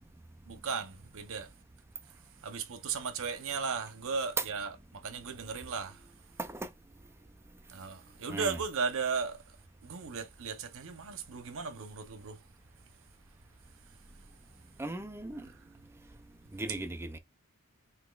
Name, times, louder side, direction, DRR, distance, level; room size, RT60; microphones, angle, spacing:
voice 1, 0.5-1.5 2.4-6.0 7.7-9.4 9.8-12.4, right 5 dB, 65° right, 0.8 m, -36 dB
voice 2, 6.4-6.7 8.3-8.6 14.8-15.5 16.5-17.2, right 2 dB, 10° right, 0.4 m, -38 dB
5.9 x 2.8 x 2.4 m
head